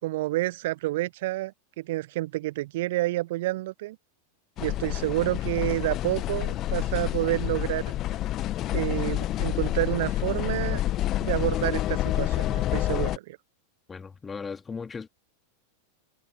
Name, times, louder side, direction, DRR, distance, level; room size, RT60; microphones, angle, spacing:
voice 1, 0.0-4.0 4.6-7.8 8.7-10.8 11.2-13.4, right 18 dB, 55° right, 1.2 m, -29 dB
sound 1, 4.6-13.2, left 14 dB, 35° left, 1.4 m, -28 dB
voice 2, 13.9-15.1, left 5 dB, 15° left, 2.8 m, -37 dB
figure-of-eight pair, 90°, 0 cm